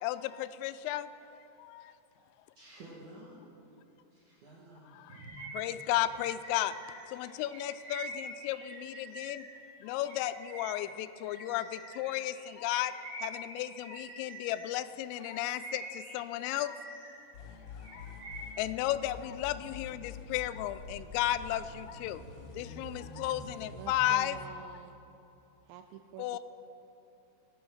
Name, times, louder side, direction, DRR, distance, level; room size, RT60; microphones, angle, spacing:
voice 1, 0.0-1.1 1.6-1.9 4.9-6.7 7.1-9.5 9.8-12.9 13.2-16.8 17.7-22.2 22.5-24.4 24.7-24.8 26.2-26.4, left 13 dB, 90° left, 3.2 m, -34 dB
voice 2, 2.6-3.7 4.1-5.1, right 1 dB, 70° right, 1.9 m, -52 dB
Bird vocalization bird call bird song, 5.1-9.6 10.0-14.7 15.1-17.2 17.6-18.7, right 1 dB, 45° right, 4.3 m, -46 dB
sound 1, 17.3-24.2, left 3 dB, 60° left, 2.6 m, -46 dB
voice 3, 23.7-25.0 25.6-26.4, right 9 dB, 85° right, 2.6 m, -48 dB
17.5 x 9.1 x 6.3 m
omnidirectional pair, 5.7 m